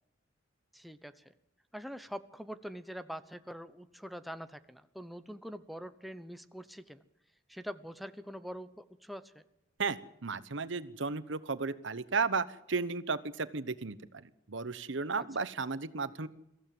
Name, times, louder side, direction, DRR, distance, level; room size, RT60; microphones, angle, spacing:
voice 1, 0.7-1.3 1.7-7.0 7.5-9.4 15.2-15.5, equal, ahead, 10 dB, 0.9 m, -44 dB
voice 2, 9.8-16.3, right 4 dB, 70° right, 15 dB, 1.0 m, -34 dB
23.0 x 15.0 x 7.7 m, 0.87 s
head